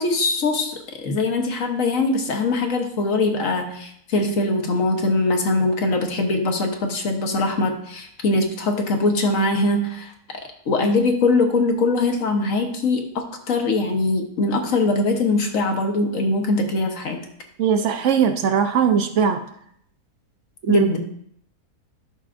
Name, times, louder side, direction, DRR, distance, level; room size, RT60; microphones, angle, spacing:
voice 1, 0.0-10.1 10.7-17.2 20.7-21.0, left 2 dB, 60° left, 3 dB, 1.4 m, -22 dB
voice 2, 17.6-19.4 20.6-20.9, right 7 dB, 60° right, 8 dB, 0.9 m, -19 dB
11.0 x 6.1 x 2.5 m, 0.67 s
omnidirectional pair, 1.6 m